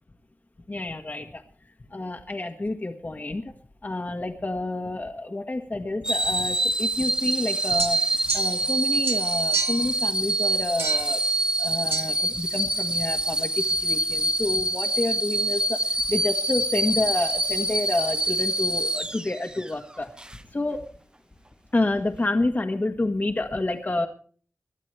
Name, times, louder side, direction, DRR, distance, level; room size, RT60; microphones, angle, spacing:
voice 1, 0.7-1.4 1.9-3.5 3.8-8.0 8.3-11.2 11.6-20.1 20.5-20.9 21.7-24.1, left 2 dB, 40° left, 4 dB, 1.4 m, -29 dB
sound 1, 6.0-19.7 20.2-20.4, right 1 dB, 20° right, 0.7 m, -26 dB
sound 2, 7.8-8.8 9.0-9.9 10.8-11.2 11.9-12.1, right 5 dB, 55° right, 1.3 m, -31 dB
21.5 x 12.5 x 3.3 m, 0.43 s
cardioid pair, 50°, 5 cm